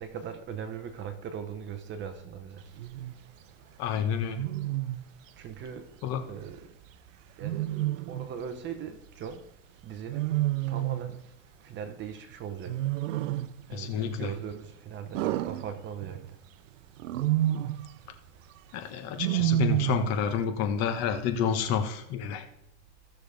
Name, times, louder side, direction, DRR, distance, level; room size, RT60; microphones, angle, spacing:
voice 1, 0.0-2.6 5.4-5.8 6.3-6.6 7.4-7.7 8.1-9.4 9.8-10.3 10.7-11.2 11.6-12.7 13.7-16.2, right 7 dB, 30° right, 0.9 m, -39 dB
Wild animals, 2.8-3.1 4.4-5.1 7.4-8.3 10.1-11.2 12.7-13.6 15.1-16.3 17.0-17.9 19.2-20.2, right 14 dB, 90° right, 0.6 m, -29 dB
voice 2, 3.8-4.4 6.0-6.2 13.7-14.3 18.7-22.5, left 7 dB, 45° left, 1.3 m, -29 dB
16.0 x 6.3 x 3.4 m
supercardioid pair, 135°, 37 cm